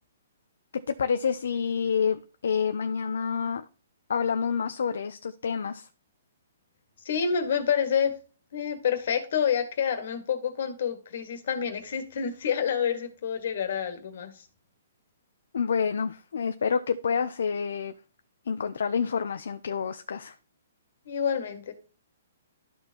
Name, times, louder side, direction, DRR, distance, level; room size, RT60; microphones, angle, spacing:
voice 1, 0.7-3.6 4.1-5.9 15.5-17.9 18.5-20.3, left 6 dB, 75° left, 9 dB, 0.5 m, -28 dB
voice 2, 7.1-8.1 8.5-14.3 21.1-21.7, left 7 dB, 60° left, 7 dB, 1.7 m, -28 dB
12.5 x 4.4 x 2.9 m, 0.37 s
hypercardioid pair, 150°, 0 cm